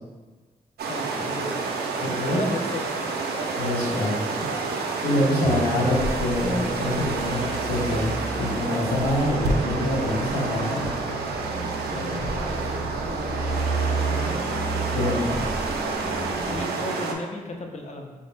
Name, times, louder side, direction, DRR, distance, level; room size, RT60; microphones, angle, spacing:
sound 1, 0.8-17.1, right 3 dB, 80° right, 0.4 m, -29 dB
voice 1, 0.9-1.5 2.3-3.0 11.7-14.4 16.4-18.1, left 2 dB, 45° left, 2 dB, 0.6 m, -36 dB
voice 2, 2.0-2.5 3.6-4.1 5.0-10.8 14.9-15.3, left 1 dB, 85° left, -5 dB, 0.9 m, -25 dB
sound 2, 5.4-16.6, right 2 dB, 10° left, 0.4 m, -32 dB
4.2 x 2.1 x 3.2 m, 1.3 s
supercardioid pair, 45°, 16 cm